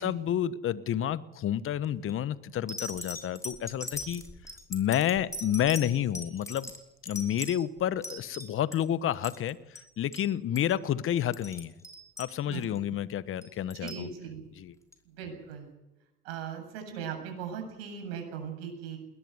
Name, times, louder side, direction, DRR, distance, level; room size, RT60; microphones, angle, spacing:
voice 1, 0.0-4.2 4.7-6.7 7.0-11.7 12.2-14.1 14.6-14.7, left 10 dB, 45° left, 16 dB, 1.2 m, -30 dB
sound 1, 1.8-2.1 2.7-8.8 9.1-9.9 10.1-10.3 10.6-10.8 11.2-12.8 13.4-14.1 14.9-15.0, left 1 dB, 10° left, 5.2 m, -40 dB
voice 2, 13.8-14.5 15.0-15.7 16.2-19.0, right 7 dB, 75° right, 5 dB, 7.8 m, -39 dB
21.0 x 20.5 x 8.0 m, 1.0 s
hypercardioid pair, 80°, 31 cm